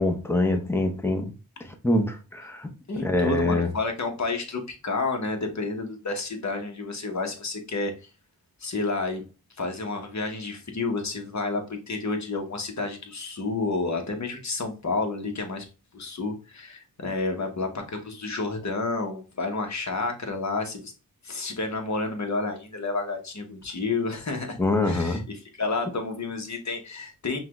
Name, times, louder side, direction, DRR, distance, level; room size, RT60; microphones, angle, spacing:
voice 1, 0.0-1.3 1.8-2.7 3.0-3.7 24.6-25.2, left 2 dB, 5° left, 0.8 m, -24 dB
voice 2, 2.9-8.1 8.6-9.2 9.6-15.6 15.9-20.9 21.2-24.6 24.8-27.4, left 3 dB, 50° left, 1.1 m, -30 dB
5.7 x 2.3 x 3.0 m
wide cardioid pair, 85°, 37 cm